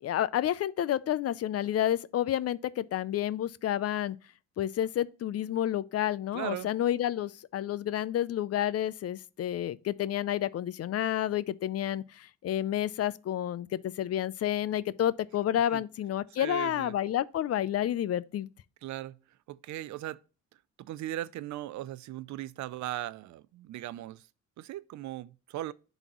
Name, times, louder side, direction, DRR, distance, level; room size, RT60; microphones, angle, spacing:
voice 1, 0.0-4.2 4.6-18.5, left 11 dB, 55° left, 0.5 m, -30 dB
voice 2, 6.3-6.7 15.7-15.8 16.4-16.9 18.8-19.2 19.5-20.2 20.8-24.2 24.6-25.7, right 14 dB, 70° right, 0.5 m, -38 dB
10.5 x 4.0 x 3.0 m
cardioid pair, 90°, 30 cm